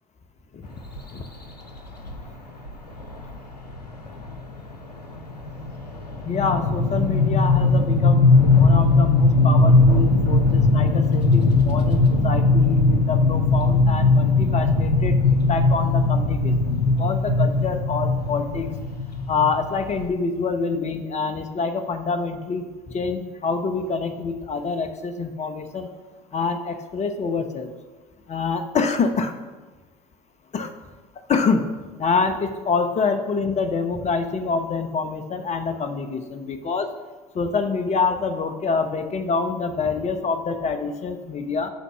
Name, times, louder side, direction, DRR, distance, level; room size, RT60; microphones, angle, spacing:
sound 1, 1.0-1.2 2.1-2.2 2.6-2.7 3.0-3.3 3.7-20.1, left 3 dB, 90° left, 0.9 m, -19 dB
voice 1, 6.2-18.7 19.3-22.7 22.9-25.9 26.3-27.7 28.3-29.3 30.5-30.7 31.3-31.7 32.0-36.9 37.3-41.7, left 4 dB, 35° left, 7 dB, 1.2 m, -26 dB
11.5 x 4.1 x 6.3 m, 1.3 s
hypercardioid pair, 65°, 20 cm